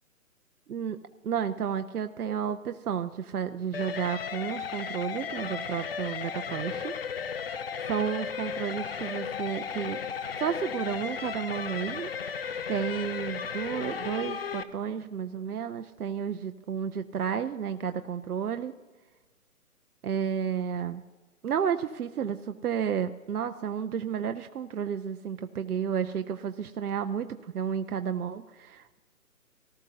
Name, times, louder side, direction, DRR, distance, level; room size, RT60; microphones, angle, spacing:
voice 1, 0.7-6.9 7.9-10.0 10.4-12.4 12.7-18.7 20.0-21.0 21.4-29.0, right 8 dB, 85° right, 9 dB, 0.7 m, -32 dB
sound 1, 3.7-14.6, left 6 dB, 45° left, 0.5 m, -35 dB
18.5 x 12.5 x 2.7 m, 1.3 s
hypercardioid pair, 155°, 44 cm